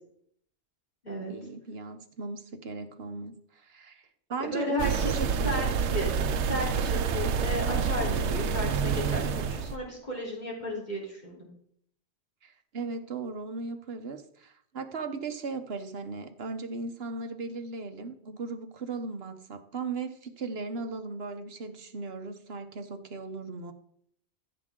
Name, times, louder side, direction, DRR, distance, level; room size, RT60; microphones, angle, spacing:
voice 1, 1.3-4.0 4.3-5.8 12.4-23.7, right 4 dB, 65° right, 8 dB, 1.2 m, -37 dB
voice 2, 4.4-5.2 5.4-5.7 5.9-6.1 6.5-11.5, left 1 dB, 40° left, -3 dB, 3.9 m, -34 dB
sound 1, 4.8-9.7, right 6 dB, 90° right, 1.0 m, -28 dB
15.0 x 7.7 x 3.7 m, 0.67 s
omnidirectional pair, 1.1 m